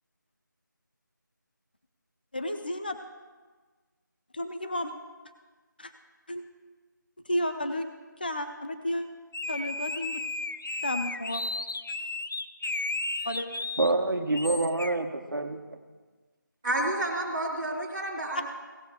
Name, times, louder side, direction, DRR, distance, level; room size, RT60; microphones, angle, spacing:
voice 1, 2.3-3.0 4.3-4.9 5.8-5.9 6.3-6.4 7.3-7.9 8.2-9.1 9.5-10.2 10.8-11.4 13.2-13.5, left 1 dB, 25° left, 7 dB, 0.5 m, -32 dB
sound 1, 9.3-13.9 14.3-15.0, left 2 dB, 85° left, 0.6 m, -34 dB
voice 2, 13.8-15.8, right 2 dB, 85° right, 5 dB, 1.3 m, -27 dB
voice 3, 16.6-18.5, right 1 dB, 5° right, -11 dB, 0.8 m, -30 dB
17.5 x 7.0 x 3.6 m, 1.4 s
figure-of-eight pair, 175°, 11 cm